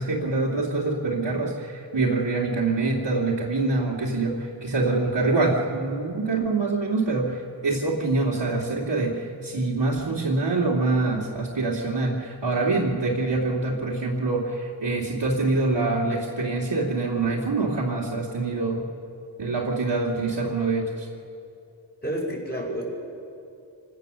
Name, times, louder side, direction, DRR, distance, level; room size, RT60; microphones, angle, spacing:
voice 1, 0.0-18.9 19.4-21.1, right 3 dB, 65° right, -5 dB, 2.5 m, -25 dB
voice 2, 22.0-22.8, equal, 20° left, -2 dB, 5.5 m, -29 dB
27.5 x 16.5 x 6.8 m, 2.6 s
wide cardioid pair, 55°, 46 cm